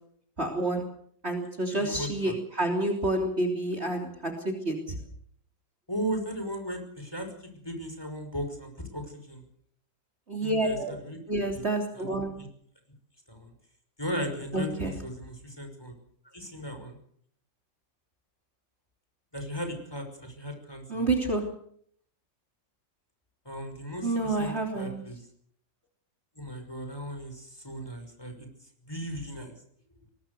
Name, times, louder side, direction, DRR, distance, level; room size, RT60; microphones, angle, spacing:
voice 1, 0.4-0.9 1.2-5.0 10.3-11.0 11.3-12.3 14.5-14.9 20.9-21.4 24.0-25.0, right 2 dB, 35° right, 2 dB, 3.5 m, -29 dB
voice 2, 1.7-2.3 5.9-9.4 10.4-11.2 11.5-11.6 11.9-12.5 13.3-13.5 14.0-15.9 16.3-17.0 19.3-21.1 23.5-25.3 26.4-28.5 28.8-29.5, equal, 10° left, 5 dB, 5.6 m, -37 dB
23.5 x 20.0 x 6.8 m, 0.64 s
omnidirectional pair, 2.0 m